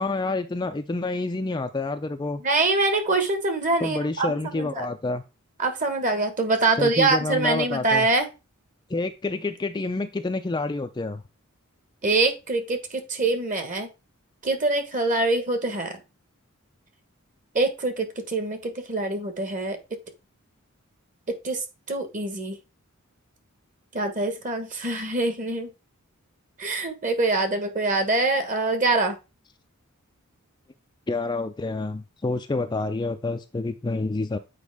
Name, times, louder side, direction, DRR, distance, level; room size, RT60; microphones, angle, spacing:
voice 1, 0.0-2.4 3.8-5.2 6.8-8.1 8.9-11.2 31.1-34.4, left 2 dB, 20° left, 7 dB, 0.4 m, -28 dB
voice 2, 2.4-4.9 5.6-8.3 12.0-13.9 14.4-16.0 17.5-19.8 21.4-22.6 23.9-25.7 26.6-29.2, right 3 dB, 35° right, 7 dB, 1.4 m, -24 dB
8.2 x 4.8 x 3.5 m, 0.28 s
head